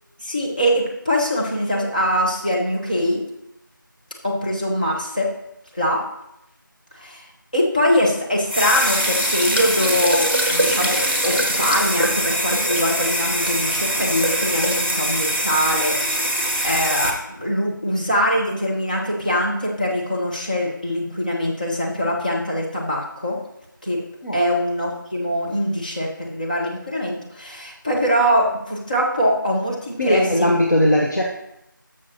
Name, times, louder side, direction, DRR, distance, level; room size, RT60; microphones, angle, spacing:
voice 1, 0.2-3.2 4.2-5.3 5.7-6.0 6.9-7.2 7.5-23.4 23.8-24.0 24.3-30.5, equal, 25° left, -4 dB, 1.1 m, -23 dB
sound 1, 8.5-17.1, right 1 dB, 35° right, 1.5 m, -22 dB
voice 2, 30.0-31.2, equal, 55° left, -1 dB, 1.1 m, -18 dB
13.0 x 6.3 x 2.9 m, 0.84 s
figure-of-eight pair, 175°, 11 cm